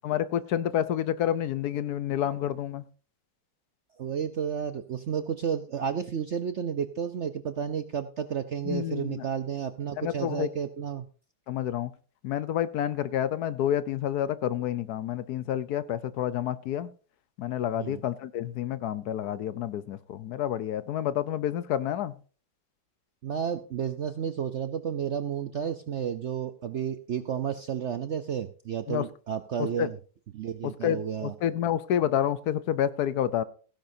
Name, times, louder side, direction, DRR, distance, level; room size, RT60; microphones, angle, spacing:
voice 1, 0.0-2.8 8.7-9.3 10.0-10.5 11.5-11.9 12.2-16.9 17.4-22.2 28.9-29.0 29.8-29.9 30.8-33.4, left 10 dB, 70° left, 15 dB, 1.1 m, -29 dB
voice 2, 4.0-11.1 17.8-18.0 23.2-30.0 30.3-31.3, right 8 dB, 60° right, 10 dB, 0.7 m, -32 dB
17.0 x 10.5 x 2.7 m, 0.39 s
omnidirectional pair, 1.9 m